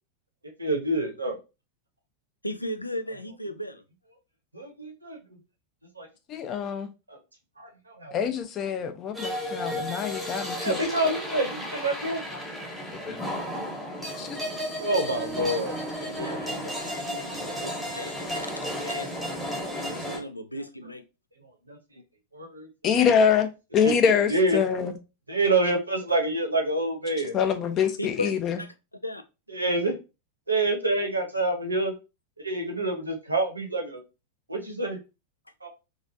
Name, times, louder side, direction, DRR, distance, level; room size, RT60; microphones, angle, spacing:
voice 1, 0.6-1.3 4.5-5.2 6.0-6.1 7.1-7.2 7.6-8.1 10.5-12.4 13.1-13.2 14.8-15.8 21.7-21.8 22.3-22.7 23.0-23.1 23.8-24.6 25.3-27.3 29.5-29.9 30.5-31.9 32.4-34.0 34.5-35.0 35.6-35.7, right 2 dB, 80° right, 3 dB, 0.8 m, -27 dB
voice 2, 2.4-3.8 9.5-9.6 16.0-19.1 19.9-21.0 28.0-28.7 29.0-29.2, left 1 dB, 85° left, 9 dB, 0.4 m, -36 dB
voice 3, 6.3-6.9 8.1-10.8 13.1-13.2 13.5-13.6 14.2-14.4 22.8-23.5 23.7-24.9 27.3-28.6, left 7 dB, 30° left, 8 dB, 0.5 m, -25 dB
sound 1, 9.1-20.2, equal, 5° left, 1.0 m, -33 dB
Piano, 15.2-17.5, right 5 dB, 40° right, 0.6 m, -41 dB
3.0 x 2.5 x 2.6 m, 0.28 s
figure-of-eight pair, 90°, 0 cm